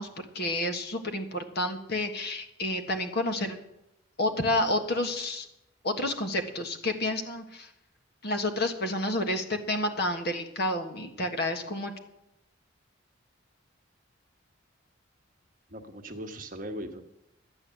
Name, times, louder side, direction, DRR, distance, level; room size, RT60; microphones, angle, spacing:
voice 1, 0.0-3.6 4.2-5.5 5.8-7.7 8.2-11.9, left 1 dB, 55° left, 5 dB, 1.5 m, -30 dB
voice 2, 15.7-17.0, equal, 45° right, 4 dB, 1.3 m, -39 dB
12.5 x 8.8 x 7.6 m, 0.85 s
head